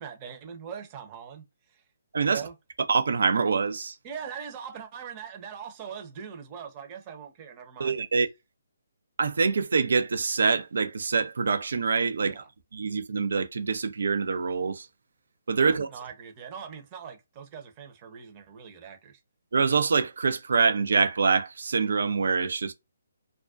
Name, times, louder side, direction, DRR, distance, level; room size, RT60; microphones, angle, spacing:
voice 1, 0.0-1.8 2.2-2.5 4.0-7.9 12.2-12.5 15.6-19.2, right 7 dB, 30° right, 0.7 m, -41 dB
voice 2, 2.9-4.0 7.8-8.3 9.2-12.4 12.7-14.9 15.5-15.9 19.5-22.7, right 5 dB, 70° right, 0.5 m, -25 dB
2.3 x 2.1 x 2.4 m
hypercardioid pair, 150°, 0 cm